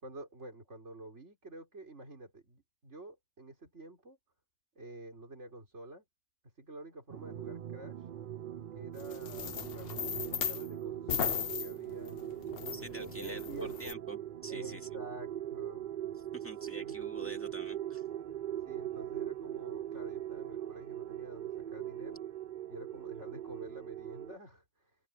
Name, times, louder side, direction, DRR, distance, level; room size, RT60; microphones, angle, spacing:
voice 1, 0.0-4.2 4.8-6.0 6.6-8.0 8.7-14.0 14.5-15.9 16.8-17.4 18.6-22.2 22.7-24.6, right 1 dB, 75° right, 5.2 m, -49 dB
sound 1, 7.1-24.4, right 11 dB, 55° right, 0.6 m, -41 dB
sound 2, 9.0-10.7 11.1-13.9, left 7 dB, 55° left, 1.1 m, -37 dB
voice 2, 12.7-14.9 16.3-18.0, right 1 dB, 10° left, 2.4 m, -48 dB
omnidirectional pair, 1.2 m